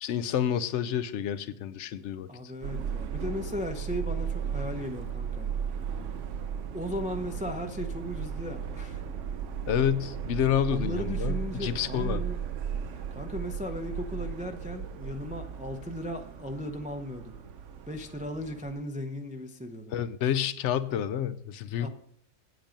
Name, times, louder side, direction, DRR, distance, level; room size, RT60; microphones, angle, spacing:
voice 1, 0.0-2.3 9.7-12.2 19.9-21.9, left 9 dB, 70° left, 14 dB, 0.9 m, -29 dB
voice 2, 2.3-5.5 6.7-9.0 10.7-12.4 12.9-17.4 17.9-19.9 21.8-21.9, equal, 10° right, 5 dB, 0.5 m, -36 dB
Subway metro underground, 2.6-18.8, right 7 dB, 70° right, 1.0 m, -35 dB
8.7 x 8.2 x 5.2 m, 0.67 s
omnidirectional pair, 1.3 m